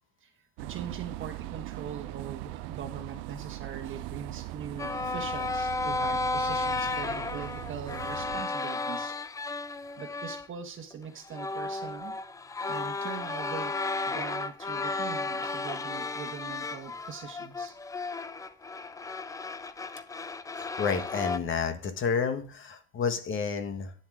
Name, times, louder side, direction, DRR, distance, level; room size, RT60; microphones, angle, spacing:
voice 1, 0.6-9.1 10.0-12.1 12.7-13.7 14.1-17.7, right 7 dB, 30° right, 3 dB, 1.6 m, -41 dB
sound 1, 0.6-8.5, right 17 dB, 70° right, 0.8 m, -40 dB
sound 2, 4.8-10.5 10.9-11.0 11.3-21.4, left 3 dB, 10° left, 0.4 m, -33 dB
voice 2, 20.5-23.9, left 6 dB, 30° left, 8 dB, 1.5 m, -30 dB
10.0 x 7.2 x 4.9 m, 0.42 s
supercardioid pair, 120°, 38 cm